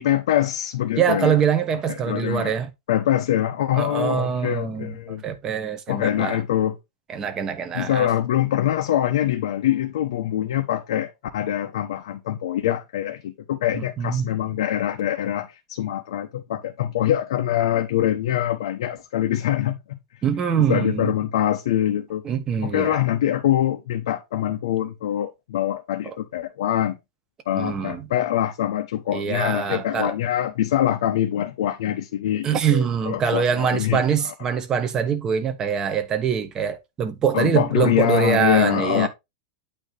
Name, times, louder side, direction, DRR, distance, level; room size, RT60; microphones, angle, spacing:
voice 1, 0.0-1.4 1.9-2.5 2.9-5.2 5.9-6.8 7.7-20.0 20.6-22.2 22.6-27.0 27.5-34.3 37.3-39.1, left 11 dB, 85° left, 0.9 m, -24 dB
voice 2, 1.0-2.7 3.7-6.4 7.1-8.1 13.7-14.3 20.2-21.1 22.2-23.0 26.0-26.1 27.5-28.1 29.1-30.1 32.4-39.1, right 7 dB, 20° right, 1.0 m, -24 dB
8.8 x 3.0 x 5.1 m
supercardioid pair, 165°, 3 cm